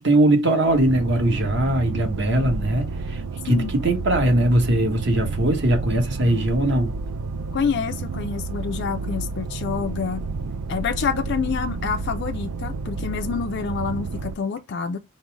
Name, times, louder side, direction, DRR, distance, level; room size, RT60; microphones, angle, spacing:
voice 1, 0.0-6.9, right 1 dB, 55° right, 1.2 m, -20 dB
sound 1, 0.7-14.3, right 4 dB, 70° right, 0.4 m, -30 dB
voice 2, 7.5-10.2 10.7-15.0, left 6 dB, 55° left, 0.3 m, -27 dB
5.2 x 2.0 x 4.7 m
head